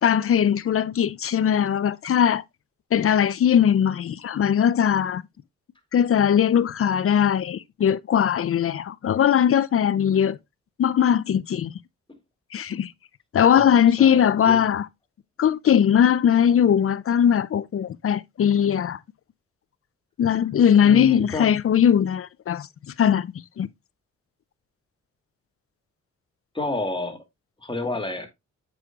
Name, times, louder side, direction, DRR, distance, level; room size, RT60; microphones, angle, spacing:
voice 1, 0.0-2.4 2.9-5.2 5.9-10.4 10.8-11.7 12.5-12.9 13.3-14.9 15.4-19.0 20.2-22.7 23.0-23.7, left 9 dB, 50° left, 0.5 m, -20 dB
voice 2, 13.5-14.6 20.8-21.5 26.5-27.2 27.6-28.3, left 2 dB, 15° left, 2.3 m, -30 dB
7.8 x 6.2 x 2.3 m
supercardioid pair, 50°, 30 cm